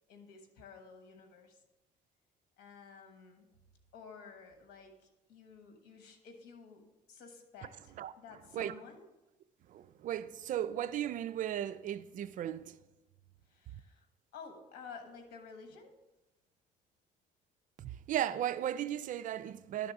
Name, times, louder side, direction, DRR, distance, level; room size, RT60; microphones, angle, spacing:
voice 1, 0.0-1.6 2.6-3.5 3.9-9.1 13.5-14.1 14.3-16.0, left 5 dB, 90° left, 1.3 m, -52 dB
voice 2, 9.7-12.7 17.8-19.9, right 11 dB, 50° right, 0.4 m, -36 dB
11.5 x 3.8 x 4.7 m
cardioid pair, 110°, 17 cm